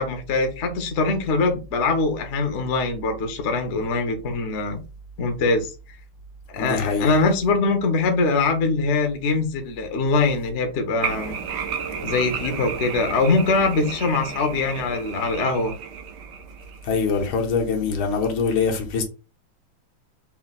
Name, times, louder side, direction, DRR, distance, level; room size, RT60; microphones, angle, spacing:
voice 1, 0.0-4.8 5.2-5.7 6.5-11.3 12.0-15.7, left 3 dB, 55° left, 0.8 m, -22 dB
voice 2, 6.6-7.1 16.8-19.0, left 5 dB, 80° left, 1.8 m, -23 dB
sound 1, 11.0-17.0, right 7 dB, 65° right, 1.2 m, -32 dB
4.4 x 2.2 x 4.0 m
omnidirectional pair, 2.3 m